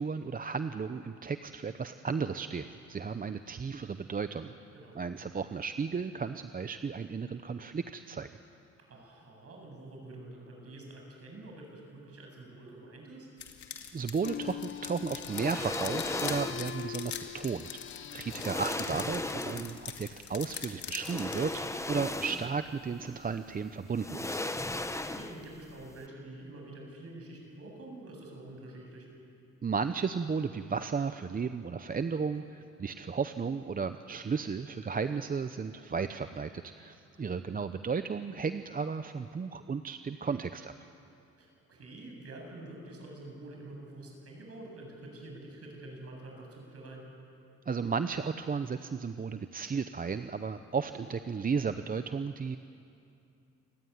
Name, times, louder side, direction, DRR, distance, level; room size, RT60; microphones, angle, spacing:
voice 1, 0.0-4.5 5.0-8.3 13.9-17.7 18.1-24.4 29.6-40.7 47.7-52.6, right 5 dB, 30° right, 10 dB, 0.8 m, -34 dB
voice 2, 4.7-5.2 8.9-13.3 18.3-18.6 24.9-29.1 37.1-37.6 41.4-47.1, right 2 dB, 50° right, 1 dB, 7.7 m, -47 dB
sound 1, 13.4-21.6, left 9 dB, 70° left, 2.2 m, -43 dB
sound 2, 14.2-20.2, left 9 dB, 40° left, 0.5 m, -43 dB
sound 3, 15.2-16.8 17.8-17.9 18.3-19.9 21.0-22.7 23.0-23.1 23.9-25.6 25.8-26.0, left 2 dB, 10° left, 1.1 m, -36 dB
28.0 x 15.0 x 9.7 m, 2.6 s
cardioid pair, 90°, 30 cm